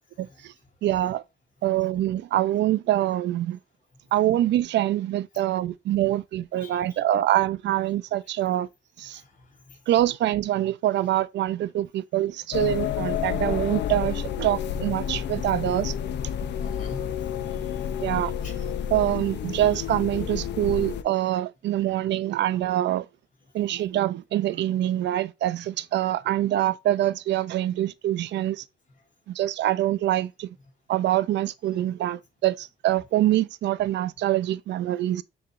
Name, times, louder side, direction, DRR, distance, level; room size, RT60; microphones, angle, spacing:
voice 1, 0.2-0.5 0.8-1.2 1.6-3.6 4.1-8.7 9.0-9.2 9.9-15.9 18.0-18.3 18.9-23.1 23.5-28.6 29.3-30.5 30.9-35.2, right 13 dB, 65° right, 0.4 m, -25 dB
voice 2, 6.6-7.0 9.1-9.3 16.6-17.9 18.1-18.5 19.5-19.7, left 2 dB, 40° left, 2.4 m, -45 dB
sound 1, 12.5-21.0, left 9 dB, 60° left, 0.5 m, -30 dB
6.7 x 3.1 x 2.5 m
cardioid pair, 90°, 20 cm